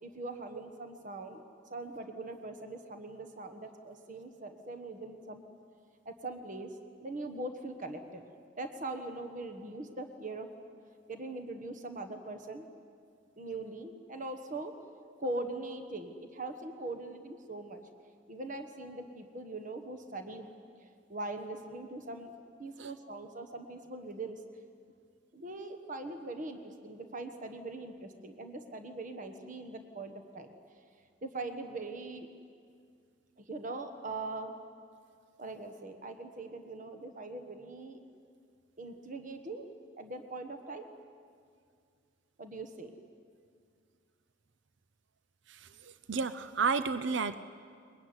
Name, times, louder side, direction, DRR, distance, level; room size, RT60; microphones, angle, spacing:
voice 1, 0.0-1.4 1.7-5.4 6.0-6.7 7.0-8.2 8.6-10.5 11.1-12.7 13.4-14.7 15.2-17.8 18.3-20.5 20.8-22.3 22.6-24.4 25.3-30.5 31.2-32.3 33.4-34.5 35.4-38.0 38.8-39.7 40.0-40.9 42.4-42.9, right 2 dB, 40° right, 6 dB, 1.4 m, -41 dB
voice 2, 45.5-47.4, right 5 dB, 65° right, 12 dB, 0.6 m, -32 dB
22.0 x 22.0 x 9.7 m, 2.2 s
head